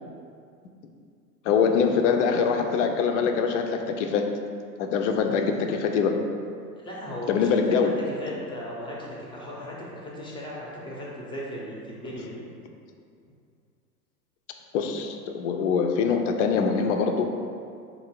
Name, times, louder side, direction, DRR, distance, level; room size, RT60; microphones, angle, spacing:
voice 1, 1.4-4.3 4.8-6.2 7.3-8.0 14.7-17.3, left 6 dB, 50° left, 5 dB, 0.5 m, -23 dB
voice 2, 6.8-7.9 8.2-12.3 13.2-13.3, equal, 10° left, -4 dB, 0.7 m, -37 dB
4.0 x 2.6 x 4.5 m, 2.3 s
hypercardioid pair, 100°, 49 cm